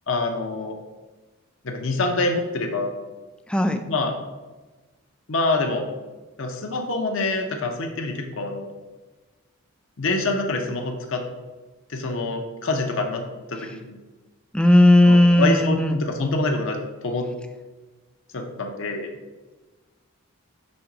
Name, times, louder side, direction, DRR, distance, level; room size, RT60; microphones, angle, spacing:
voice 1, 0.1-0.8 1.6-2.9 3.9-4.1 5.3-5.9 6.4-8.7 10.0-11.2 11.9-13.2 13.5-14.0 15.0-17.3 18.3-19.1, left 2 dB, 60° left, 3 dB, 0.7 m, -26 dB
voice 2, 3.5-3.8 14.5-16.0, left 1 dB, 5° left, 6 dB, 0.3 m, -15 dB
5.3 x 3.7 x 5.8 m, 1.2 s
head